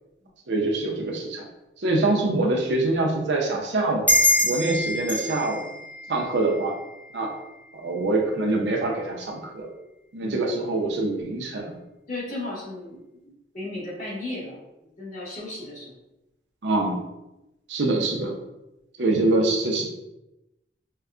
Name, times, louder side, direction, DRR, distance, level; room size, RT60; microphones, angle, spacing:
voice 1, 0.5-1.5 1.8-4.0 4.4-5.6 6.1-6.7 7.1-7.3 7.7-9.7 10.1-11.8 16.6-17.0 17.7-18.4 19.0-19.9, right 2 dB, 70° right, 0 dB, 0.7 m, -24 dB
sound 1, 4.1-7.2, left 1 dB, 10° left, 0.6 m, -25 dB
voice 2, 12.1-13.0 13.5-14.6 15.0-15.9, left 2 dB, 45° left, -7 dB, 1.5 m, -34 dB
5.4 x 2.2 x 2.4 m, 0.94 s
head